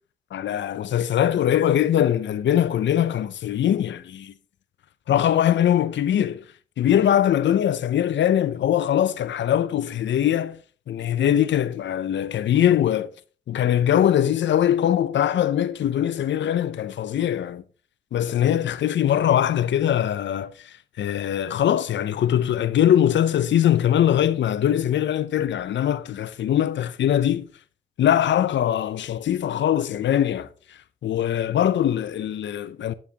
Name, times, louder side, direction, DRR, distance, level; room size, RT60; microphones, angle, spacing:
voice 1, 0.3-4.3 5.1-6.4 6.8-10.6 10.9-13.1 13.5-17.6 18.1-27.5 28.0-30.5 31.0-32.9, left 10 dB, 85° left, 0.5 m, -22 dB
9.5 x 7.2 x 2.8 m
cardioid pair, 85°, 18 cm